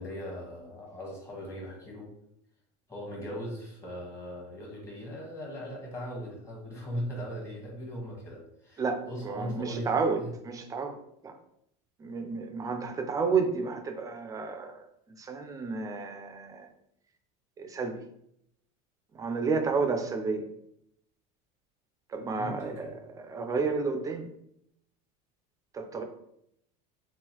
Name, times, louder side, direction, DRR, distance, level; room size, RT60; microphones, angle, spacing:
voice 1, 0.0-2.1 2.9-10.3 22.4-22.9, equal, 15° left, -3 dB, 1.2 m, -39 dB
voice 2, 8.8-11.4 12.0-16.7 17.6-18.0 19.1-20.5 22.1-24.3 25.7-26.0, right 4 dB, 20° right, 5 dB, 0.4 m, -31 dB
3.7 x 2.5 x 2.9 m, 0.75 s
supercardioid pair, 140°, 19 cm